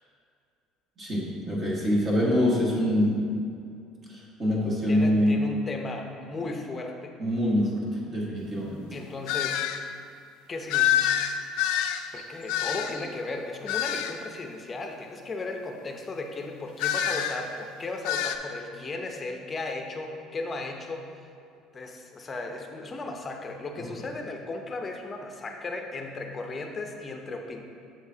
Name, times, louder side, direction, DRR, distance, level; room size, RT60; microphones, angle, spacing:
voice 1, 1.0-3.3 4.1-5.4 7.2-8.8, left 1 dB, 30° right, -5 dB, 1.5 m, -25 dB
voice 2, 4.9-7.1 8.9-9.7 10.5-11.1 12.1-21.1 21.7-27.6, left 3 dB, 25° left, 3 dB, 0.7 m, -36 dB
sound 1, 9.3-9.8 10.7-13.1 13.7-14.2 16.8-17.4 18.0-18.4, left 10 dB, 80° left, 0.4 m, -26 dB
7.4 x 6.9 x 2.8 m, 2.4 s
cardioid pair, 130°, 0 cm